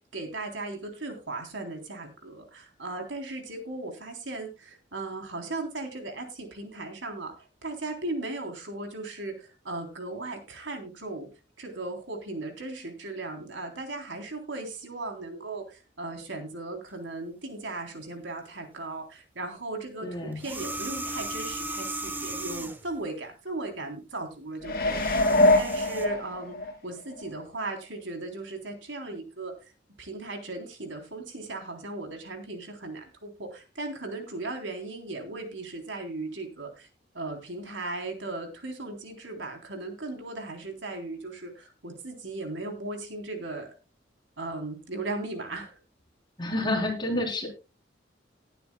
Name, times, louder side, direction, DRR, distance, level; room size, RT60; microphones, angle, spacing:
voice 1, 0.1-7.3 7.6-11.3 11.6-29.5 30.0-36.9 37.1-43.7 44.4-45.8, right 2 dB, 85° right, 4 dB, 3.5 m, -37 dB
voice 2, 20.0-20.4 46.4-47.5, left 1 dB, 25° left, 1 dB, 3.7 m, -29 dB
sound 1, 20.3-22.9 24.7-26.1, right 2 dB, 10° right, 0.9 m, -36 dB
sound 2, 24.6-26.7 27.2-27.3, left 1 dB, 55° left, 2.8 m, -23 dB
19.5 x 9.3 x 2.3 m, 0.29 s
head